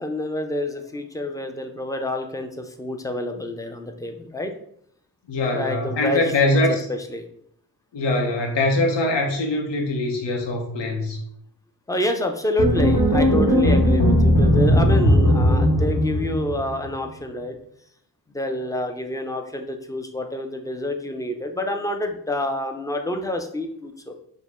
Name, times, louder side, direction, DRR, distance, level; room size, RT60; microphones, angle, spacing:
voice 1, 0.0-4.5 5.5-7.3 11.9-17.6 18.3-24.1, left 1 dB, 10° left, 5 dB, 0.5 m, -28 dB
voice 2, 5.3-6.9 7.9-11.2, left 2 dB, 75° left, 1 dB, 0.8 m, -22 dB
sound 1, 12.6-16.8, equal, 60° left, 1.4 m, -18 dB
5.1 x 2.2 x 3.5 m, 0.68 s
cardioid pair, 85°, 43 cm